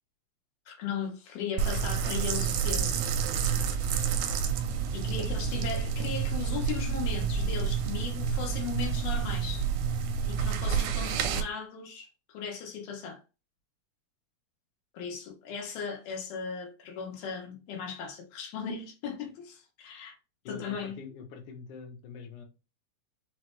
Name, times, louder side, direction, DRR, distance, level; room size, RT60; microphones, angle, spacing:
voice 1, 0.7-3.0 4.9-9.7 10.2-13.2 14.9-20.2 20.5-21.0, left 6 dB, 90° left, 3.0 m, -37 dB
sound 1, 1.6-11.4, right 7 dB, 80° right, 1.7 m, -29 dB
voice 2, 20.4-22.4, left 5 dB, 70° left, 2.0 m, -44 dB
6.1 x 2.2 x 3.1 m
omnidirectional pair, 4.1 m